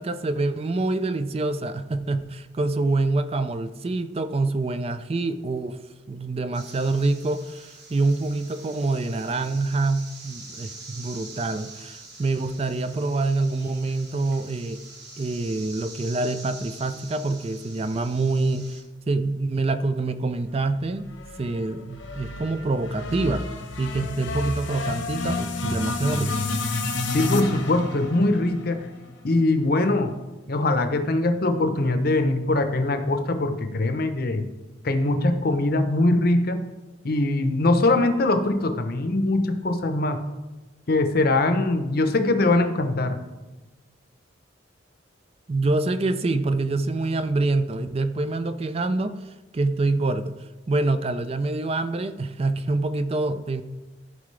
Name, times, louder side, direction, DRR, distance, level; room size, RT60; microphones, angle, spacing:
voice 1, 0.0-5.8 6.1-14.8 15.2-18.7 19.1-21.1 21.4-23.5 23.8-26.4 45.5-50.4 50.7-53.6, right 2 dB, 30° right, 11 dB, 0.4 m, -26 dB
sound 1, 6.5-18.8, right 3 dB, 60° right, 2.5 m, -45 dB
sound 2, 21.1-29.4, left 3 dB, 85° left, 1.1 m, -30 dB
voice 2, 27.1-28.9 29.2-30.1 30.5-34.5 34.8-36.6 37.0-40.2 40.9-43.2, left 2 dB, 50° left, 8 dB, 0.7 m, -22 dB
14.5 x 4.9 x 3.2 m, 1.1 s
head